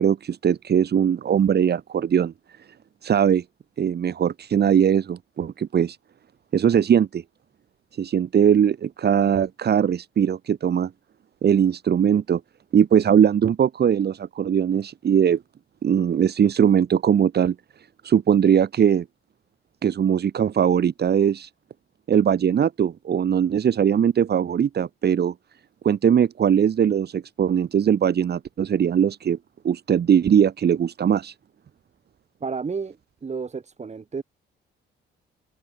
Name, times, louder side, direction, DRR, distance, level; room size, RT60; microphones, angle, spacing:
voice 1, 0.0-2.3 3.0-3.4 3.8-6.0 6.5-7.2 8.0-10.9 11.4-12.4 12.7-15.4 15.8-19.1 19.8-21.5 22.1-25.3 25.8-29.4 29.6-31.3, right 8 dB, 55° right, 3.7 m, -20 dB
voice 2, 32.4-33.0 33.2-34.2, right 5 dB, 35° right, 3.8 m, -31 dB
open air
cardioid pair, 90°, 20 cm